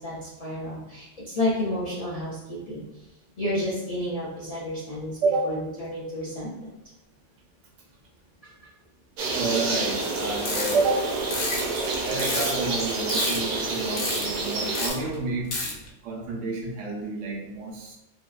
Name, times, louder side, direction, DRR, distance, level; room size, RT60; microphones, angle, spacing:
voice 1, 0.0-3.1 3.4-5.2 5.4-6.7 8.4-8.5, left 1 dB, 55° left, -8 dB, 0.4 m, -31 dB
sound 1, 9.2-14.9, right 3 dB, 60° right, 0.5 m, -28 dB
voice 2, 9.3-11.1 12.0-15.6 16.0-17.9, right 3 dB, 85° right, -1 dB, 1.0 m, -29 dB
sound 2, 10.2-10.9 11.3-12.7 13.1-13.7 14.0-14.4 14.6-15.2 15.5-15.9, left 2 dB, 70° left, 0.9 m, -30 dB
2.7 x 2.2 x 2.3 m, 0.90 s
omnidirectional pair, 1.3 m